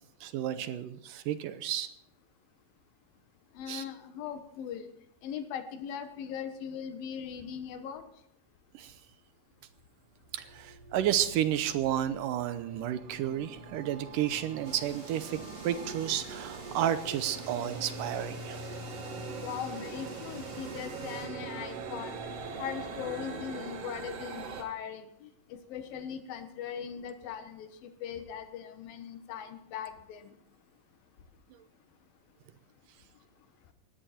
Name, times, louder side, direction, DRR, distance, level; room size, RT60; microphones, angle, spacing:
voice 1, 0.2-1.9 3.7-3.8 8.7-8.9 10.3-15.4 15.6-18.6, right 11 dB, 75° right, 13 dB, 2.3 m, -31 dB
voice 2, 3.5-4.9 5.2-8.1 19.4-22.2 22.6-30.3, left 8 dB, 80° left, 10 dB, 3.1 m, -40 dB
sound 1, 9.6-9.8 10.2-24.6, right 4 dB, 50° right, 2.3 m, -42 dB
sound 2, 14.6-21.3, right 1 dB, 25° right, 4.4 m, -51 dB
19.0 x 14.0 x 4.4 m, 0.78 s
omnidirectional pair, 4.1 m